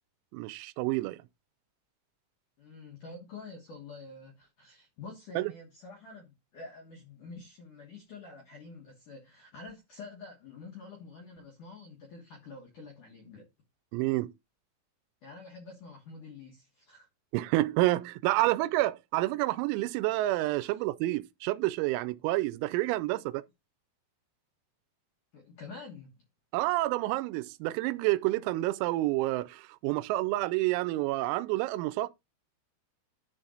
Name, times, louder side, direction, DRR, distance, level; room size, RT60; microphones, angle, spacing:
voice 1, 0.3-1.2 5.4-5.5 13.9-14.3 17.3-23.4 26.5-32.1, right 18 dB, 90° right, 3.3 m, -29 dB
voice 2, 2.6-13.5 15.2-17.1 20.6-20.8 23.1-23.2 25.3-26.2, left 3 dB, 75° left, 1.8 m, -47 dB
11.0 x 4.1 x 3.8 m
omnidirectional pair, 6.0 m